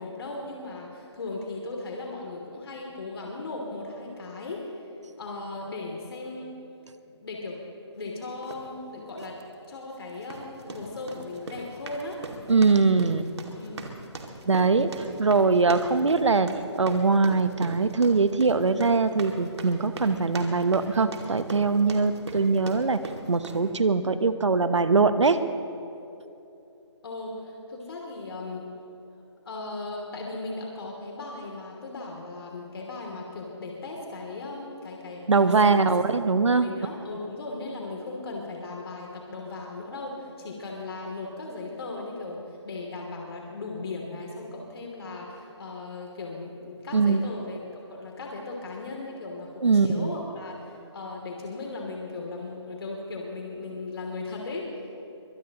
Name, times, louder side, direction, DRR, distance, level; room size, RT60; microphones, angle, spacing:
voice 1, 0.0-4.9 5.2-6.5 7.0-7.6 8.0-9.4 9.7-12.2 13.5-13.9 27.0-28.7 29.4-36.1 36.6-55.0, left 3 dB, 55° left, -1 dB, 2.8 m, -37 dB
sound 1, 8.4-8.6 9.2-9.4 10.1-23.7, right 3 dB, 65° right, 2.3 m, -40 dB
voice 2, 12.5-13.3 14.5-16.5 16.7-23.0 23.3-25.4 35.3-36.7 46.9-47.2 49.6-50.1, right 4 dB, 80° right, 11 dB, 1.0 m, -22 dB
23.5 x 20.5 x 3.0 m, 2.8 s
figure-of-eight pair, 155°, 15 cm